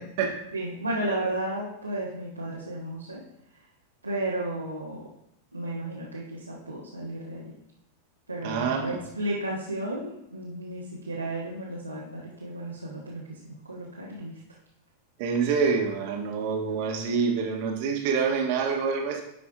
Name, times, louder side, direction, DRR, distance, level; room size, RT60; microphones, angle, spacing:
voice 1, 0.0-0.4 8.4-9.0 15.2-19.2, right 5 dB, 45° right, 1 dB, 1.4 m, -27 dB
voice 2, 0.5-3.2 4.0-5.1 5.5-7.5 8.3-14.4, right 1 dB, 85° right, -5 dB, 1.4 m, -33 dB
11.0 x 5.1 x 3.5 m, 0.79 s
figure-of-eight pair, 90°, 0 cm